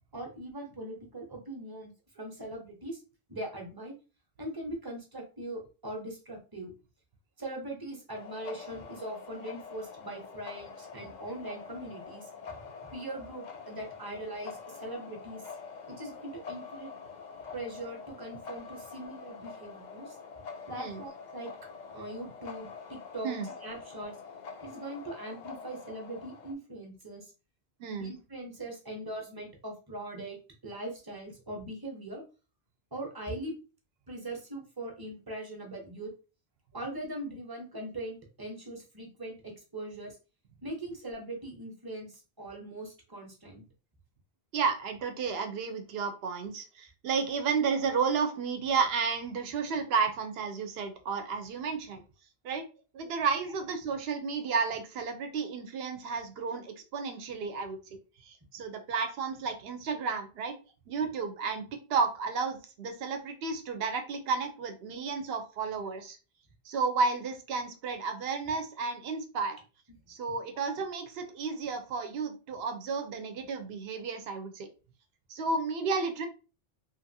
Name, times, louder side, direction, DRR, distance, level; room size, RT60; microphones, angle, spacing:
voice 1, 0.1-3.0 3.3-4.0 4.4-6.7 7.4-12.6 12.9-15.4 15.9-16.9 17.5-20.2 20.7-21.5 21.9-23.3 23.6-24.1 24.6-27.3 28.0-30.4 30.6-32.2 32.9-33.5 34.1-36.1 36.7-40.2 40.6-43.6 68.5-68.6, right 1 dB, 25° right, 1 dB, 0.7 m, -41 dB
sound 1, 8.1-26.5, left 5 dB, 55° left, 0.6 m, -45 dB
voice 2, 27.8-28.1 44.5-52.0 52.4-52.6 52.9-57.8 58.2-60.6 60.9-66.2 66.7-69.6 70.1-74.7 75.3-76.3, right 5 dB, 80° right, 6 dB, 0.8 m, -32 dB
2.9 x 2.5 x 2.6 m, 0.33 s
omnidirectional pair, 1.0 m